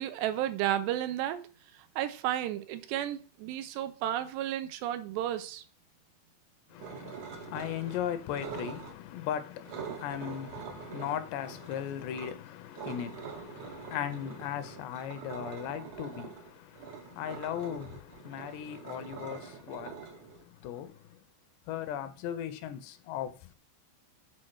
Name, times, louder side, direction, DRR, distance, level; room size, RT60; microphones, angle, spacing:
voice 1, 0.0-1.5 2.0-5.6, right 12 dB, 85° right, 2.9 m, -32 dB
voice 2, 6.7-21.2 21.7-23.5, left 10 dB, 80° left, 2.8 m, -38 dB
sound 1, 6.8-8.0 8.3-8.9 9.7-12.3 12.7-20.8, right 7 dB, 65° right, 2.1 m, -44 dB
7.7 x 4.5 x 6.1 m
omnidirectional pair, 5.0 m